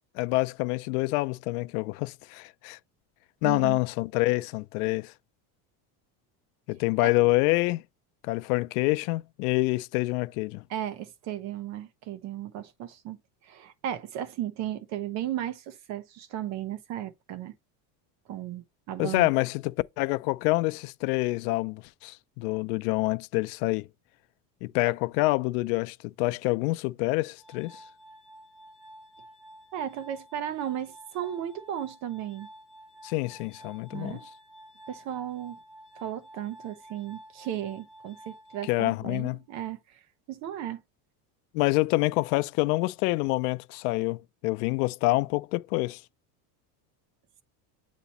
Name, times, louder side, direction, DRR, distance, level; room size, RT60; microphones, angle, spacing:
voice 1, 0.1-2.8 3.4-5.1 6.7-7.8 8.2-10.6 19.0-23.9 24.6-27.8 33.0-34.2 38.7-39.4 41.5-46.0, left 22 dB, 85° left, 0.6 m, -27 dB
voice 2, 3.4-3.8 7.0-7.1 10.7-13.2 13.4-17.5 18.3-19.3 29.7-32.5 33.9-34.3 34.9-35.6 36.0-40.0 40.3-40.8, right 11 dB, 40° right, 0.7 m, -35 dB
Glass, 27.4-39.4, right 1 dB, ahead, 1.1 m, -51 dB
8.1 x 2.9 x 4.1 m
cardioid pair, 170°, 44 cm